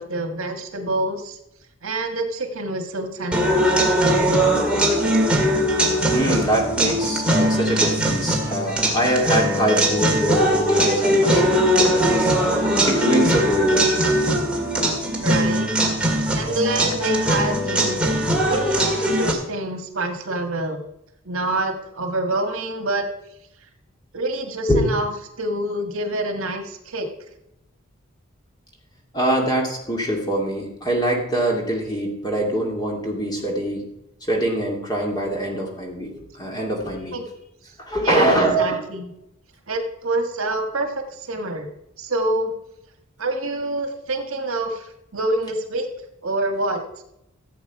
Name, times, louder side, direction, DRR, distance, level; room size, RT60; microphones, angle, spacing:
voice 1, 0.0-1.4 1.8-3.6 15.0-15.7 16.3-18.0 18.4-20.8 21.2-23.1 24.1-25.1 25.4-27.1 37.1-37.2 38.0-39.1 39.7-41.7 42.0-42.5 43.2-45.9 46.2-46.8, right 2 dB, 75° right, 6 dB, 1.6 m, -26 dB
sound 1, 3.3-19.3, right 1 dB, 5° right, 2.0 m, -20 dB
voice 2, 4.0-4.3 6.1-12.3 12.6-14.0 24.7-24.8 29.1-33.9 34.3-37.2 37.8-38.8, right 1 dB, 20° left, 0 dB, 2.4 m, -23 dB
15.0 x 7.9 x 4.7 m, 0.83 s
head